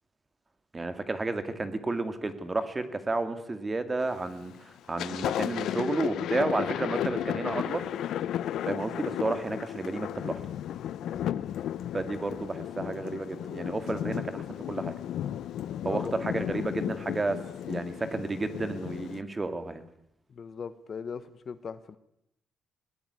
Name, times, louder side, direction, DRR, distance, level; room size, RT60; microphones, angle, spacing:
voice 1, 0.7-8.2 8.7-10.4 11.9-14.4 14.7-14.9 15.8-17.4 17.7-19.8, right 3 dB, 20° right, 10 dB, 2.3 m, -32 dB
Thunder, 4.0-4.4 4.8-19.2, left 11 dB, 80° left, 0.8 m, -34 dB
voice 2, 11.0-11.6 15.8-16.1 16.4-16.5 20.3-22.0, left 6 dB, 45° left, 14 dB, 1.2 m, -40 dB
20.0 x 18.0 x 9.7 m, 0.80 s
cardioid pair, 115°, 0 cm